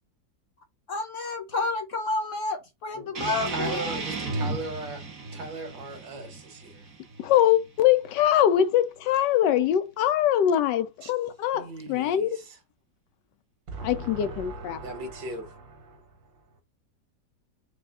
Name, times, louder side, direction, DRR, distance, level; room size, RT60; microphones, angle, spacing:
voice 1, 0.9-4.0, left 3 dB, 55° left, 0.9 m, -30 dB
voice 2, 2.9-5.0 5.3-6.8 11.0-11.1 11.5-12.6 13.7-16.3, right 2 dB, 85° right, 2.1 m, -38 dB
sound 1, 3.1-8.2, right 3 dB, 50° right, 1.7 m, -35 dB
voice 3, 7.2-12.4 13.8-14.8, left 11 dB, 75° left, 1.2 m, -23 dB
4.8 x 2.3 x 3.6 m
omnidirectional pair, 1.9 m